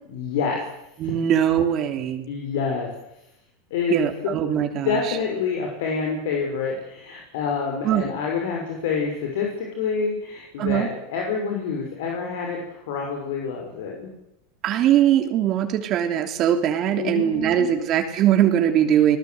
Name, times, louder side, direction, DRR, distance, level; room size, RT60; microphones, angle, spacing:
voice 1, 0.1-0.6 1.0-1.1 2.3-2.9 3.7-4.0 4.5-4.6 4.8-14.1 17.0-17.7, left 5 dB, 70° left, 1 dB, 6.2 m, -27 dB
voice 2, 1.0-2.3 3.9-5.2 7.8-8.1 10.6-10.9 14.6-19.2, right 10 dB, 45° right, 5 dB, 3.2 m, -21 dB
29.5 x 19.0 x 8.1 m, 0.86 s
hypercardioid pair, 110°, 0 cm